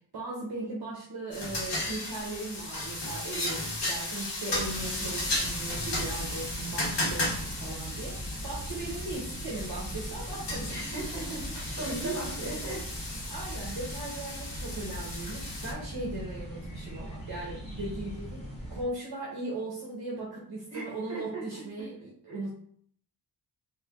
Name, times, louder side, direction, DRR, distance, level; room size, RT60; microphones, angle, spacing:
voice 1, 0.1-10.7 11.9-12.3 13.3-18.4 18.7-22.5, right 2 dB, 60° right, -4 dB, 0.9 m, -38 dB
sound 1, 1.3-15.7, left 1 dB, 75° left, 1.0 m, -35 dB
sound 2, 4.5-18.8, right 1 dB, 15° left, 1.4 m, -40 dB
voice 2, 10.7-12.8 20.7-21.6 22.3-22.4, right 2 dB, 40° right, -3 dB, 1.5 m, -38 dB
3.3 x 2.7 x 3.5 m, 0.62 s
wide cardioid pair, 175°, 42 cm